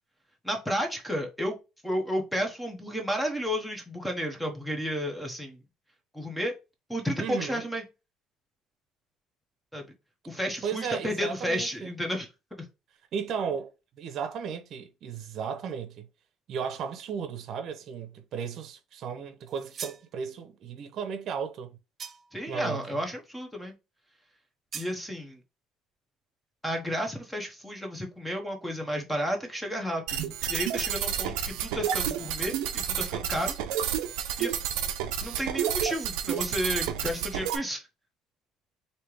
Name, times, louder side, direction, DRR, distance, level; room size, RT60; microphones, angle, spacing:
voice 1, 0.4-1.5 1.8-5.6 6.1-6.5 6.9-7.8 9.7-9.8 10.3-12.3 22.3-23.7 24.7-25.4 26.6-33.6 34.4-34.5 35.2-37.8, equal, 5° left, 1.0 m, -32 dB
voice 2, 7.2-7.6 10.6-11.9 13.1-13.7 14.0-16.1 16.5-21.8 22.5-22.8, right 7 dB, 55° right, 0.8 m, -35 dB
sound 1, 19.5-20.1 22.0-22.4 24.7-25.0, right 6 dB, 35° right, 0.4 m, -41 dB
sound 2, 30.1-37.6, right 9 dB, 90° right, 0.6 m, -30 dB
3.3 x 2.9 x 4.6 m
cardioid pair, 130°, 0 cm